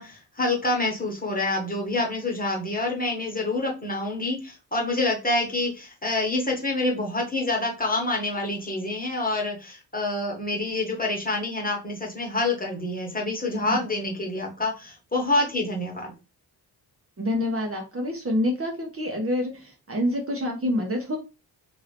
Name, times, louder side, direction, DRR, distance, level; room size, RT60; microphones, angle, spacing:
voice 1, 0.0-16.1, left 2 dB, 20° left, -1 dB, 1.3 m, -27 dB
voice 2, 17.2-21.2, left 1 dB, 30° right, 1 dB, 1.0 m, -27 dB
2.8 x 2.7 x 3.3 m, 0.29 s
cardioid pair, 60°, 45 cm